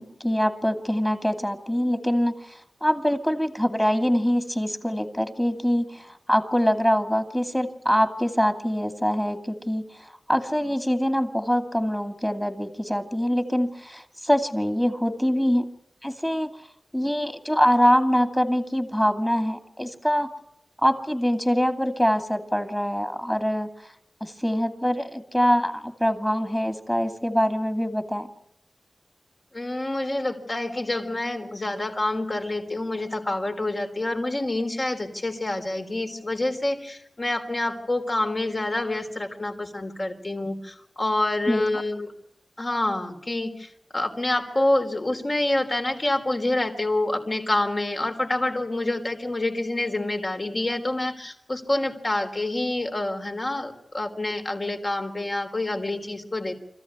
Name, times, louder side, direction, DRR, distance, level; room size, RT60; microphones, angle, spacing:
voice 1, 0.0-15.7 16.0-16.5 16.9-20.3 20.8-23.7 24.2-28.3 41.5-41.8, equal, 5° left, 7 dB, 2.6 m, -24 dB
voice 2, 29.5-42.1 42.6-56.5, left 2 dB, 40° left, 4 dB, 3.6 m, -27 dB
25.5 x 15.0 x 9.7 m, 0.78 s
wide cardioid pair, 75°, 0 cm